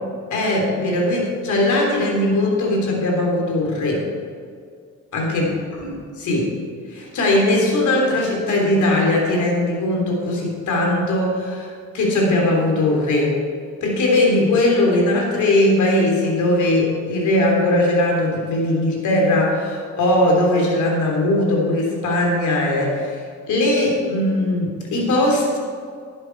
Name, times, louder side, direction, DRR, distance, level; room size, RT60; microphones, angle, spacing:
voice 1, 0.3-4.0 5.1-5.5 5.8-5.9 6.2-6.5 6.9-13.4 13.8-25.6, left 1 dB, 75° left, -1 dB, 3.4 m, -19 dB
11.5 x 11.0 x 4.7 m, 2.2 s
cardioid pair, 90°, 30 cm